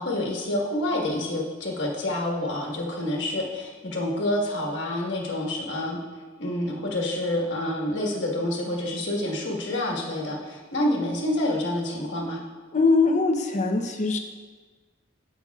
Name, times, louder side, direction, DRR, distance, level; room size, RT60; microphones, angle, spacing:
voice 1, 0.0-6.0 6.4-12.4, left 1 dB, 75° left, -2 dB, 1.5 m, -28 dB
voice 2, 12.7-14.2, left 3 dB, 40° left, 5 dB, 0.6 m, -22 dB
15.0 x 5.5 x 2.4 m, 1.4 s
head